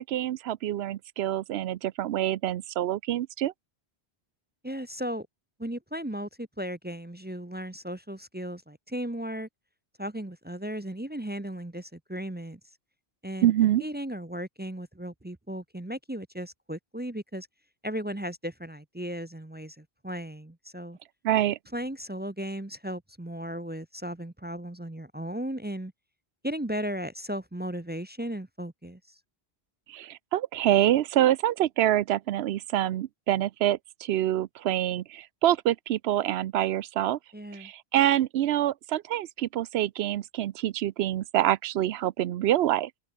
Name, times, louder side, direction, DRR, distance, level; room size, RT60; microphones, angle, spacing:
voice 1, 0.0-3.5 13.4-13.8 21.2-21.6 29.9-37.2 37.5-42.9, right 12 dB, 80° right, 0.8 m, -26 dB
voice 2, 4.6-5.3 5.6-9.5 10.0-12.6 13.2-13.5 13.8-17.5 17.8-21.0 21.7-25.9 26.4-29.0 37.3-37.7, equal, 10° right, 0.6 m, -36 dB
omnidirectional pair, 1.0 m